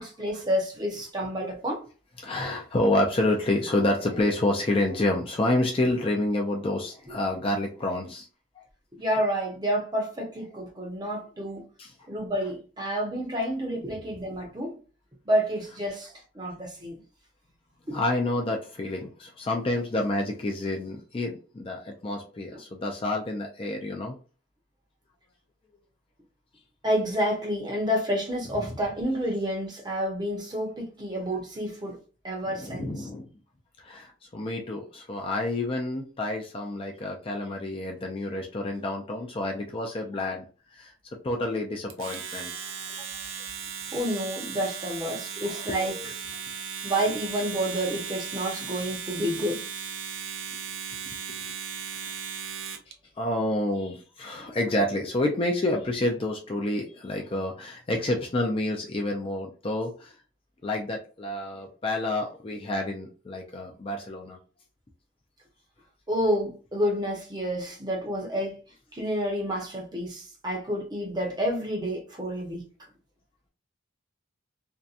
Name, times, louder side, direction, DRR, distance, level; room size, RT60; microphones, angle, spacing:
voice 1, 0.0-1.8 8.9-11.6 12.1-14.8 15.3-17.0 17.9-18.0 26.8-32.0 32.2-33.1 43.9-46.0 46.8-49.6 66.1-68.6 68.9-72.7, equal, 20° right, 0.7 m, -29 dB
voice 2, 2.2-8.3 11.8-11.9 17.9-24.2 32.5-33.3 33.8-40.4 40.7-40.9 41.2-42.5 45.4-46.1 51.3-51.4 52.0-52.1 53.2-60.1 60.6-64.4, left 1 dB, 25° left, 0.4 m, -29 dB
Domestic sounds home sounds, 41.9-52.9, right 7 dB, 70° right, 0.5 m, -37 dB
2.6 x 2.2 x 2.4 m
head